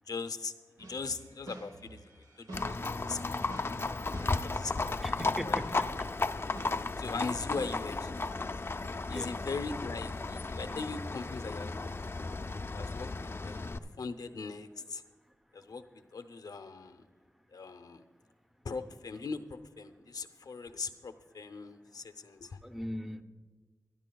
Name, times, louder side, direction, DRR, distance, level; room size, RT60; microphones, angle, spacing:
voice 1, 0.1-0.5 0.8-2.8 3.1-3.4 4.5-5.6 6.3-8.2 9.1-12.2 12.7-15.0 15.5-17.0 17.5-18.0 18.6-22.6, left 4 dB, 80° left, 10 dB, 0.7 m, -40 dB
sound 1, 0.8-6.2 6.5-7.8, right 1 dB, 85° right, 1.1 m, -49 dB
Livestock farm animals working animals, 2.5-13.8, left 3 dB, 40° left, 0.5 m, -34 dB
voice 2, 5.0-5.8 9.1-9.3 22.6-23.2, equal, 5° right, 8 dB, 0.8 m, -39 dB
22.0 x 12.5 x 2.3 m, 1.4 s
wide cardioid pair, 65°, 6 cm